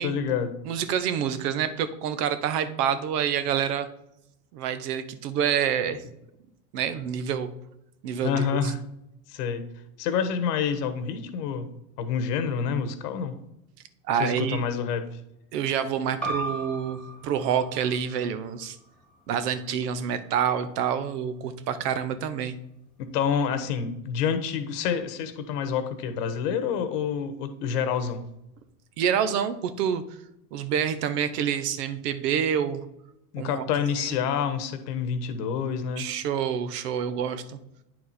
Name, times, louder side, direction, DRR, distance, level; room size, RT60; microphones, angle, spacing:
voice 1, 0.0-0.5 8.2-8.8 9.3-9.6 10.0-11.7 12.0-13.4 14.2-15.0 23.0-28.2 33.3-36.1, left 7 dB, 75° left, 10 dB, 1.2 m, -28 dB
voice 2, 0.6-3.9 4.5-6.0 6.7-7.5 8.0-8.7 14.1-14.6 15.5-18.8 19.3-22.6 29.0-30.0 30.5-32.9 33.4-33.7 34.0-34.2 36.0-37.6, right 8 dB, 75° right, 11 dB, 1.0 m, -27 dB
sound 1, 16.2-21.4, right 2 dB, ahead, 1.5 m, -39 dB
9.5 x 4.6 x 4.2 m, 0.82 s
hypercardioid pair, 100°, 48 cm